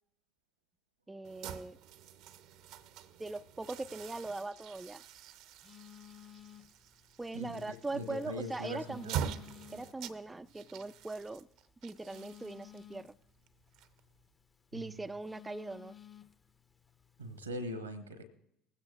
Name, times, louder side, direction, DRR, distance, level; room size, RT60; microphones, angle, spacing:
voice 1, 1.1-1.8 3.2-5.0 7.2-9.3 9.7-11.5 11.8-13.1 14.7-16.0, right 2 dB, 15° right, 11 dB, 0.4 m, -41 dB
sound 1, 1.2-14.3, right 9 dB, 60° right, 0.6 m, -45 dB
Telephone, 4.7-17.5, left 10 dB, 25° left, 0.8 m, -58 dB
voice 2, 7.9-9.1 14.7-15.1 17.2-18.2, equal, 85° right, 10 dB, 1.1 m, -41 dB
20.0 x 15.5 x 2.4 m, 0.75 s
figure-of-eight pair, 55°, 0 cm